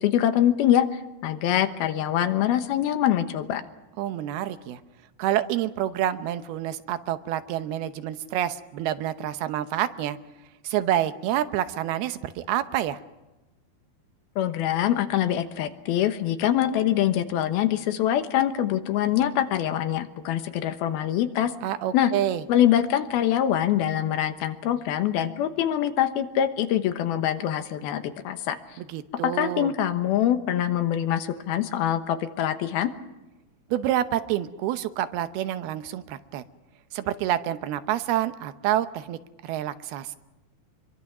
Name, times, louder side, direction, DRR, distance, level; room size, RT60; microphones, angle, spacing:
voice 1, 0.0-3.6 14.4-21.5 21.9-22.1 22.5-28.6 29.2-32.9, left 11 dB, 80° left, 9 dB, 3.0 m, -24 dB
voice 2, 4.0-4.8 5.2-10.2 10.6-13.0 21.6-22.4 28.8-29.7 33.7-36.4 36.9-40.2, right 12 dB, 85° right, 11 dB, 2.9 m, -28 dB
26.0 x 23.0 x 6.1 m, 1.1 s
omnidirectional pair, 4.4 m